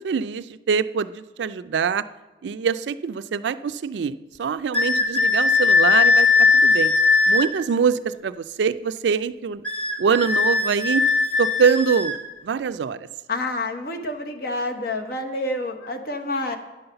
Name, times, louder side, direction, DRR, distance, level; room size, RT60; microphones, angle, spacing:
voice 1, 0.0-2.0 2.4-6.3 6.5-6.9 7.3-9.6 10.0-11.0 11.4-12.2 12.4-13.1, right 6 dB, 75° right, 14 dB, 0.4 m, -24 dB
sound 1, 4.7-7.5 9.6-12.2, left 4 dB, 5° left, 1.0 m, -19 dB
voice 2, 13.3-16.6, left 2 dB, 55° left, 5 dB, 0.9 m, -28 dB
9.5 x 5.5 x 6.8 m, 1.2 s
head